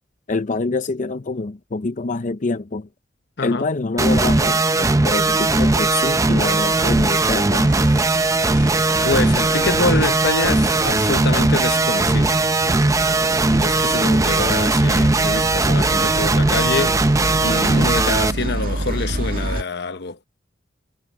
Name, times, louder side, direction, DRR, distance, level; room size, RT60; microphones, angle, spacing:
voice 1, 0.3-2.9 3.4-7.9, left 3 dB, 45° left, 0.6 m, -26 dB
sound 1, 4.0-18.3, right 2 dB, 20° right, 0.6 m, -18 dB
sound 2, 5.1-19.6, right 1 dB, 50° right, 1.8 m, -31 dB
sound 3, 7.7-11.2, right 6 dB, 65° right, 2.8 m, -41 dB
voice 2, 9.0-12.4 13.5-17.0 17.4-20.2, left 3 dB, 65° left, 1.0 m, -25 dB
head